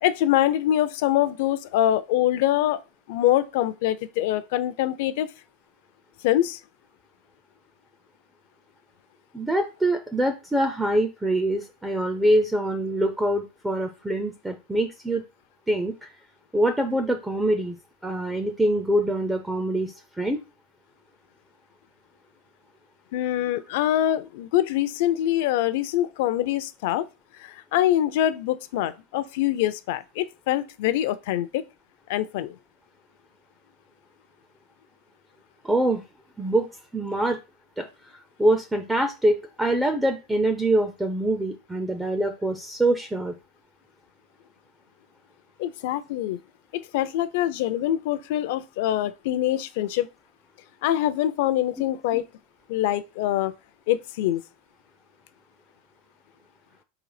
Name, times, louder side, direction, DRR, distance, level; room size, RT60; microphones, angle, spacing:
voice 1, 0.0-2.8 3.1-5.3 6.2-6.6 23.1-27.1 27.4-31.6 32.1-32.6 45.6-46.4 46.7-50.1 50.8-52.2 52.7-53.5 53.9-54.4, left 13 dB, 55° left, 0.5 m, -24 dB
voice 2, 9.3-15.2 15.7-16.1 16.5-17.8 18.0-20.4 35.6-36.0 36.4-36.7 36.9-37.4 37.8-37.9 38.4-43.3, right 1 dB, 5° right, 0.4 m, -24 dB
3.9 x 2.8 x 4.8 m
supercardioid pair, 175°, 0 cm